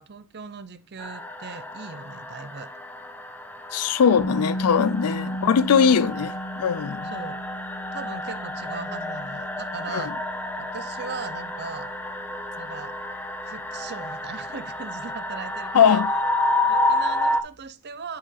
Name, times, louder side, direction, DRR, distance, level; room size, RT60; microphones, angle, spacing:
voice 1, 0.0-2.7 5.1-5.3 5.8-6.0 7.0-7.4 7.9-10.1 10.6-11.9 12.6-12.9 13.4-16.0 16.7-18.2, right 5 dB, 50° right, 0.6 m, -38 dB
sound 1, 1.0-17.4, left 1 dB, 10° left, 0.5 m, -30 dB
voice 2, 3.7-7.1 9.9-10.1 15.7-16.1, left 7 dB, 80° left, 0.4 m, -20 dB
sound 2, 4.2-16.0, equal, 65° left, 1.3 m, -36 dB
9.6 x 5.6 x 3.2 m
head